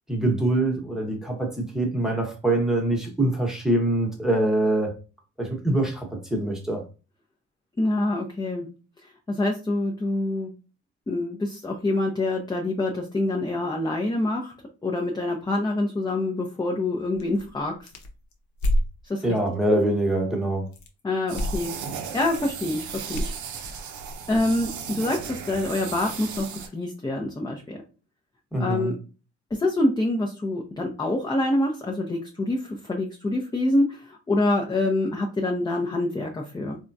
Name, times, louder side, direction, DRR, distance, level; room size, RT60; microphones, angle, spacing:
voice 1, 0.1-4.9 5.4-6.8 19.2-20.7 28.5-28.9, right 1 dB, ahead, 1.0 m, -24 dB
voice 2, 7.8-8.7 9.0-10.5 11.1-14.5 14.8-17.9 19.0-19.2 21.0-23.4 24.3-27.8 28.5-29.0 29.5-36.8, left 2 dB, 15° left, 0.6 m, -26 dB
sound 1, 17.1-18.9 20.7-21.0 21.3-21.7 22.0-22.5 23.1-24.6, equal, 70° left, 0.8 m, -28 dB
sound 2, 21.3-26.7, right 6 dB, 75° right, 0.6 m, -36 dB
3.6 x 2.2 x 2.6 m
cardioid pair, 90°, 30 cm